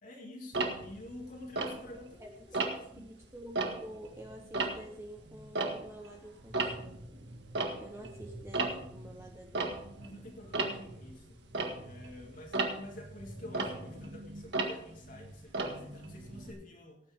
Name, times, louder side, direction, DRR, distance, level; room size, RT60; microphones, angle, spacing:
voice 1, 0.0-3.1 10.0-11.4 11.8-17.0, left 1 dB, 45° left, -1 dB, 2.2 m, -49 dB
Tick-tock, 0.5-2.2 2.5-3.0 3.4-6.1 6.4-16.5, right 3 dB, 70° right, 1.7 m, -36 dB
voice 2, 2.2-7.0 7.8-9.7, equal, 15° right, 1 dB, 0.9 m, -49 dB
17.5 x 9.2 x 3.5 m, 0.71 s
head